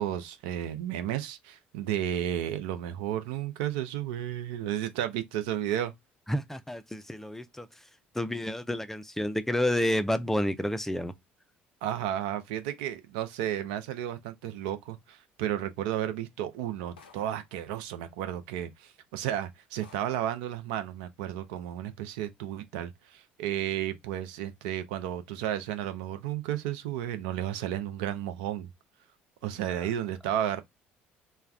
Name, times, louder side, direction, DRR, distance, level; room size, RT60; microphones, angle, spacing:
voice 1, 0.0-5.9 11.8-28.7 29.4-30.6, right 11 dB, 75° right, 0.4 m, -33 dB
voice 2, 6.3-7.7 8.1-11.1, left 1 dB, 5° left, 0.4 m, -29 dB
sound 1, 17.0-17.5 18.6-18.7 19.2-19.3 19.8-20.4, left 5 dB, 90° left, 0.4 m, -55 dB
2.2 x 2.2 x 3.3 m
hypercardioid pair, 60°, 5 cm